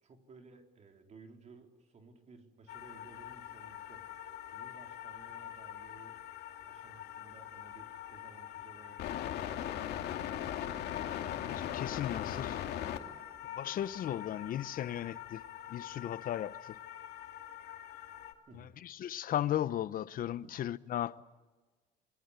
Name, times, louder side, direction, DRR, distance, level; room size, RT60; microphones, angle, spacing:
voice 1, 0.0-4.1 4.5-6.2 6.6-9.0 9.3-10.2 18.5-18.9 20.4-20.5, right 3 dB, 40° right, 3.8 m, -57 dB
sound 1, 2.7-18.3, left 11 dB, 75° left, 2.6 m, -41 dB
voice 2, 11.4-12.6 13.6-15.4 15.7-16.8 18.5-21.2, left 11 dB, 55° left, 0.9 m, -36 dB
27.0 x 22.5 x 8.3 m
cardioid pair, 110°, 17 cm